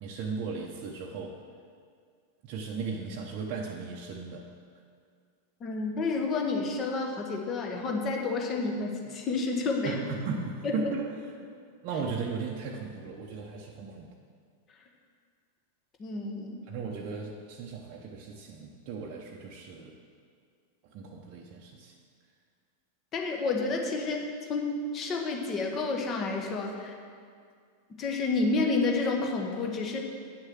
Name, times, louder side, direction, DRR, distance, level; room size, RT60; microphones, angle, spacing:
voice 1, 0.0-1.4 2.4-4.5 9.8-11.1 11.8-14.1 16.7-19.9 20.9-21.9, right 5 dB, 40° right, -2 dB, 0.8 m, -36 dB
voice 2, 5.6-10.0 10.6-10.9 16.0-16.6 23.1-26.9 28.0-30.0, left 3 dB, 30° left, 1 dB, 1.3 m, -30 dB
8.9 x 6.4 x 6.3 m, 2.1 s
figure-of-eight pair, 90°, 0 cm